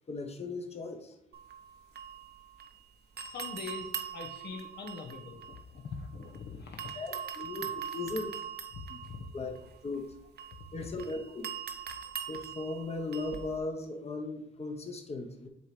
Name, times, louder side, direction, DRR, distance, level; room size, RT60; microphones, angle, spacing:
voice 1, 0.1-1.1 6.9-8.4 8.9-9.0 9.3-9.6 9.8-10.1 10.7-11.5 12.3-15.5, left 3 dB, 30° left, 4 dB, 1.1 m, -37 dB
sound 1, 1.3-2.8 3.2-6.4 6.8-13.6, right 8 dB, 55° right, 0.9 m, -42 dB
voice 2, 3.3-7.0 7.6-7.8 8.7-9.2, left 4 dB, 55° left, 2 dB, 1.0 m, -43 dB
8.0 x 3.1 x 5.2 m, 0.80 s
cardioid pair, 90°, 20 cm